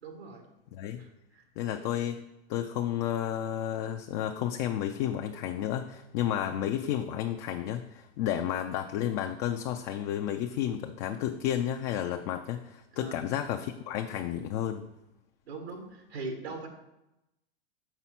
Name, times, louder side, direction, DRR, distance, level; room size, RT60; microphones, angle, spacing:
voice 1, 0.0-0.4 1.0-1.5 12.9-13.2 15.4-16.7, right 3 dB, 90° right, 4 dB, 1.6 m, -41 dB
voice 2, 0.7-1.0 1.6-2.2 2.5-14.9, left 11 dB, 45° left, 5 dB, 0.5 m, -32 dB
5.7 x 4.0 x 5.8 m, 0.91 s
hypercardioid pair, 120°, 31 cm